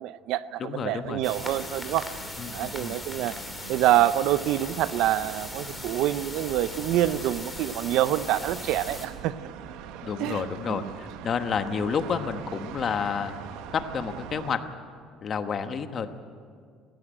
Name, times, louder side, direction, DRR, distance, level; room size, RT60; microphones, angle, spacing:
voice 1, 0.0-2.1 2.5-3.4 3.7-9.4 10.2-10.9, right 13 dB, 65° right, 15 dB, 0.6 m, -26 dB
voice 2, 0.6-1.2 2.4-3.0 10.0-13.4 13.7-14.6 15.2-16.1, left 6 dB, 35° left, 8 dB, 1.1 m, -30 dB
sound 1, 1.0-14.6, right 9 dB, 85° right, 1.1 m, -43 dB
sound 2, 1.2-9.1, left 2 dB, 5° left, 2.5 m, -39 dB
19.0 x 15.5 x 9.0 m, 2.1 s
cardioid pair, 160°, 0 cm